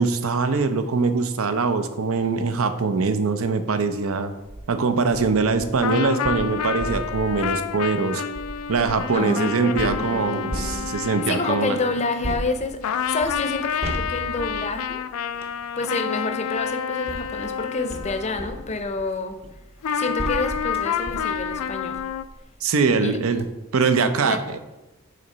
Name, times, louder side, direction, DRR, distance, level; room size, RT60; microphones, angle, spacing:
voice 1, 0.0-4.3 4.7-8.2 8.7-11.8 22.6-23.4 23.7-24.4, right 4 dB, 75° right, 9 dB, 0.6 m, -22 dB
sound 1, 4.3-4.7 5.1-9.2 9.8-11.3 12.2-15.6 16.5-22.5 22.9-23.0 23.3-23.4, right 1 dB, 30° right, 0.6 m, -36 dB
sound 2, 5.8-12.6 12.8-18.8 19.8-22.2, left 7 dB, 80° left, 0.4 m, -29 dB
voice 2, 9.1-12.8 13.1-15.0 15.8-19.4 19.9-22.0 23.0-23.2 24.2-24.4, left 3 dB, 30° left, 8 dB, 0.6 m, -29 dB
6.3 x 3.9 x 5.4 m, 1.0 s
head